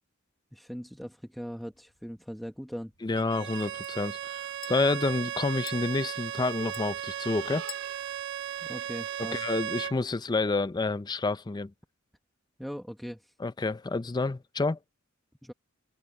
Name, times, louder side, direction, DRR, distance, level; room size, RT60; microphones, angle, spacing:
voice 1, 0.5-2.9 8.6-9.4 12.6-13.3 15.4-15.5, equal, ahead, 1.2 m, -40 dB
sound 1, 1.6-9.4, left 13 dB, 90° left, 7.2 m, -53 dB
voice 2, 3.0-7.6 9.3-11.7 13.4-14.8, left 3 dB, 20° left, 0.4 m, -29 dB
Bowed string instrument, 3.2-10.0, right 11 dB, 60° right, 0.4 m, -36 dB
sound 2, 4.1-9.5, right 6 dB, 85° right, 4.0 m, -52 dB
head